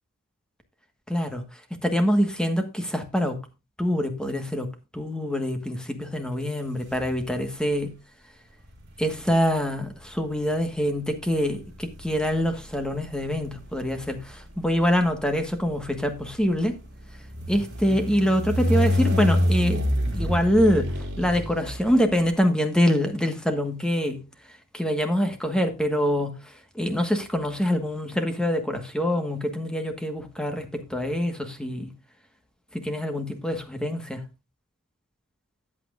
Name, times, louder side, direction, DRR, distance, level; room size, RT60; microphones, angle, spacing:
voice 1, 1.1-1.4 1.7-3.4 3.8-7.9 9.0-16.8 17.5-19.8 20.1-24.2 24.7-31.9 32.7-34.2, equal, 5° left, 1.4 m, -25 dB
sound 1, 6.9-7.6 8.6-22.3, left 1 dB, 55° right, 3.7 m, -29 dB
13.5 x 8.6 x 2.5 m
head